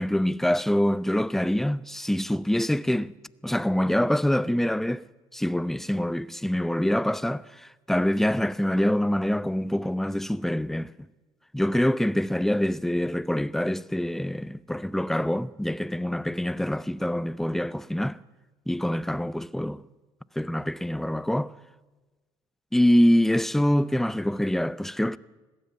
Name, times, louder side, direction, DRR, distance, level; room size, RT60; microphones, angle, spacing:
voice 1, 0.0-3.1 3.4-5.1 5.3-10.9 11.5-18.2 18.7-19.8 20.4-21.5 22.7-25.2, left 1 dB, 5° left, 0.6 m, -25 dB
21.0 x 15.5 x 8.0 m
hypercardioid pair, 65°, 12 cm